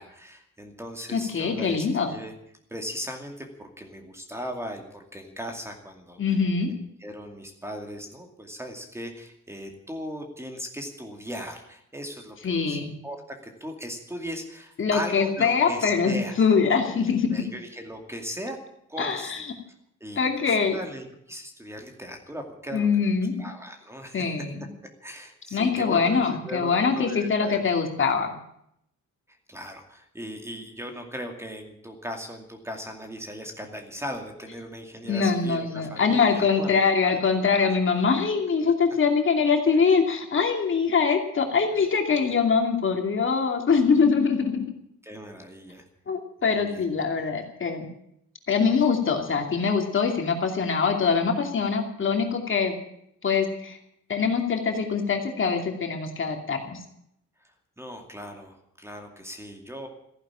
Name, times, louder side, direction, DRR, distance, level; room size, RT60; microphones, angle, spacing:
voice 1, 0.0-2.3 2.7-6.2 6.6-6.7 7.0-16.4 16.8-16.9 17.3-18.6 18.9-19.4 20.0-22.9 23.4-24.2 25.0-27.6 29.3-36.7 37.0-37.2 41.7-41.9 45.0-45.9 46.4-46.9 57.8-59.9, equal, 10° right, 4 dB, 2.4 m, -38 dB
voice 2, 1.1-2.1 6.2-6.7 12.4-12.9 14.8-17.4 19.0-19.5 20.2-20.8 22.7-23.4 24.1-24.7 25.5-28.3 35.1-44.7 46.1-47.9 48.5-52.7 53.2-53.8 54.1-56.8, left 5 dB, 40° left, 4 dB, 2.6 m, -23 dB
15.0 x 11.0 x 8.7 m, 0.73 s
wide cardioid pair, 160°, 30 cm